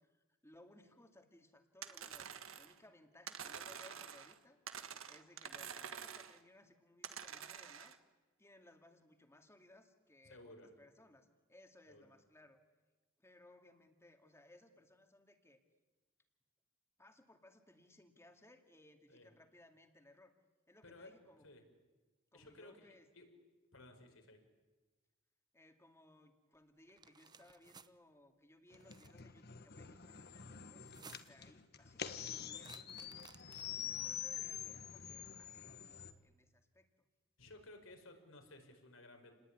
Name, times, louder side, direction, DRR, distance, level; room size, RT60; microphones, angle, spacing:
voice 1, 0.0-2.3 2.5-4.6 5.1-8.0 8.4-12.6 13.2-15.6 17.0-20.3 20.7-21.5 22.3-23.1 25.5-32.8 33.4-36.9, left 1 dB, 15° left, 6 dB, 2.4 m, -64 dB
sound 1, 1.8-2.8 3.3-4.4 4.7-6.4 7.0-8.0, right 7 dB, 85° right, 1.7 m, -48 dB
voice 2, 10.3-10.7 11.9-12.0 19.1-19.3 20.8-21.1 21.4-21.6 22.3-23.3 23.7-24.4 31.3-31.4 37.4-39.3, left 2 dB, 80° left, 4 dB, 5.3 m, -57 dB
sound 2, 26.9-27.9 28.7-29.2 30.8-31.5 32.5-33.9, right 5 dB, 20° right, 0.8 m, -59 dB
sound 3, 28.7-36.1, left 8 dB, 50° left, 1.6 m, -46 dB
29.5 x 20.0 x 9.8 m, 1.2 s
head